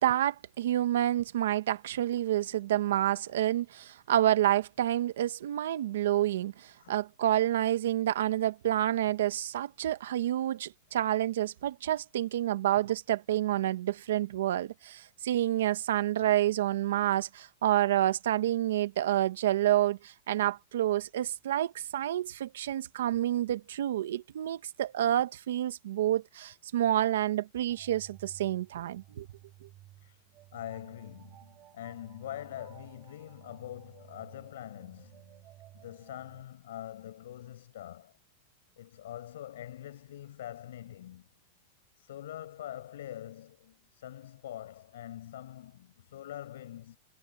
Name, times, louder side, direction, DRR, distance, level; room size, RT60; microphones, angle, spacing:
voice 1, 0.0-29.3, right 13 dB, 85° right, 1.1 m, -28 dB
sound 1, 27.7-36.4, right 14 dB, 25° right, 5.8 m, -55 dB
voice 2, 30.5-38.1 38.8-41.3 42.0-47.0, left 12 dB, 85° left, 7.4 m, -44 dB
supercardioid pair, 175°, 0 cm